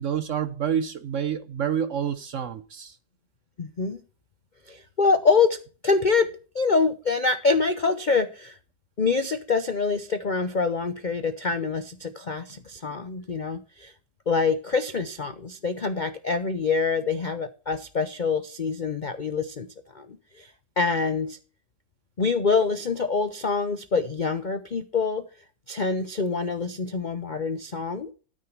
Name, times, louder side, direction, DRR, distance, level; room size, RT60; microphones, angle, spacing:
voice 1, 0.0-3.0, right 8 dB, 60° right, 0.9 m, -28 dB
voice 2, 3.6-4.0 4.7-5.6 5.8-6.3 6.5-8.6 9.0-13.9 14.3-19.7 19.9-20.1 20.3-20.5 20.8-21.4 22.2-25.3 25.7-28.1, left 4 dB, 65° left, 0.4 m, -25 dB
13.0 x 6.5 x 4.4 m
omnidirectional pair, 2.0 m